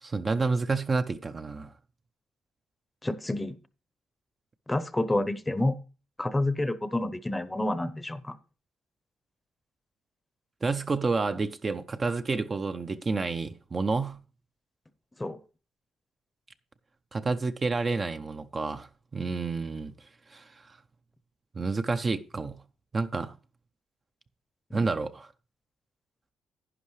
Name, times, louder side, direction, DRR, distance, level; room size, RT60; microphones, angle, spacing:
voice 1, 0.0-1.7 10.6-14.2 17.1-19.9 20.3-20.8 21.6-22.6 22.9-23.3 24.7-25.3, right 3 dB, 30° right, 0.7 m, -29 dB
voice 2, 3.0-3.6 4.7-5.8 6.2-8.4 15.2-15.4 24.7-24.8, left 1 dB, 15° left, 0.8 m, -29 dB
11.0 x 10.0 x 3.2 m
cardioid pair, 90°, 0 cm